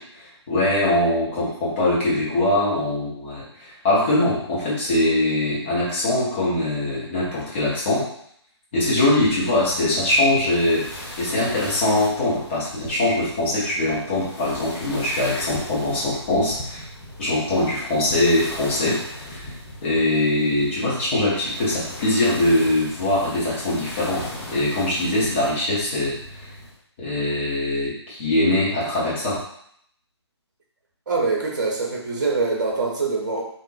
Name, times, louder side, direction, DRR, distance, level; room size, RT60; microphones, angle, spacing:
voice 1, 0.0-8.1 8.7-16.9 17.2-19.4 19.8-24.2 24.5-26.5 27.0-29.4, left 1 dB, 25° left, -8 dB, 1.3 m, -22 dB
sound 1, 9.2-26.8, left 1 dB, 10° left, 0.5 m, -38 dB
voice 2, 31.1-33.4, right 3 dB, 40° right, -2 dB, 1.0 m, -24 dB
3.5 x 2.7 x 2.4 m, 0.68 s
figure-of-eight pair, 145°, 15 cm